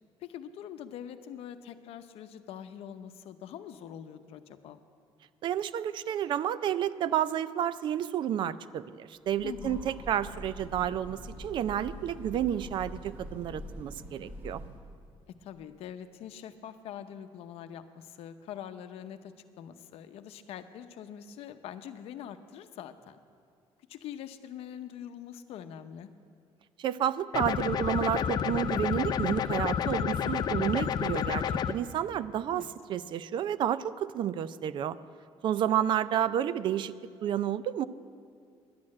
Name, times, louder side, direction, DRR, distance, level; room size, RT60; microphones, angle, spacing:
voice 1, 0.2-4.8 9.4-9.9 15.4-23.2 23.9-26.1 32.5-32.7, left 9 dB, 70° left, 10 dB, 0.7 m, -44 dB
voice 2, 5.4-14.6 26.8-35.0 35.4-36.9 37.2-37.9, right 10 dB, 50° right, 16 dB, 0.4 m, -30 dB
Train, 9.3-15.0, equal, 20° right, 1.6 m, -44 dB
sound 1, 27.3-31.7, left 8 dB, 40° left, 0.4 m, -30 dB
11.0 x 8.6 x 9.7 m, 2.3 s
cardioid pair, 160°, 10 cm